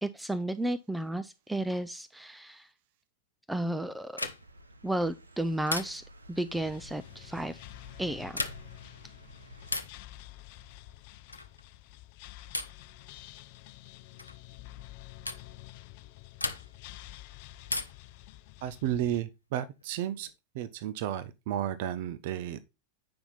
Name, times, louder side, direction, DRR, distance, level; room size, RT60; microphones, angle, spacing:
voice 1, 0.0-2.7 3.5-4.2 4.8-7.6 8.0-8.4, right 1 dB, 5° right, 0.5 m, -33 dB
sound 1, 4.1-4.7 5.7-6.3 8.2-8.9 9.7-10.1 11.3-11.6 12.5-12.9 14.2-14.4 15.3-15.5 16.4-16.9 17.7-18.2 19.6-20.3, left 2 dB, 80° left, 0.9 m, -36 dB
sound 2, 4.4-9.8, right 1 dB, 80° right, 0.9 m, -53 dB
sound 3, 6.5-19.2, left 15 dB, 45° left, 0.5 m, -49 dB
voice 2, 18.6-20.3 20.5-22.6, right 11 dB, 50° right, 0.7 m, -33 dB
8.6 x 5.7 x 4.0 m
figure-of-eight pair, 90°, 0 cm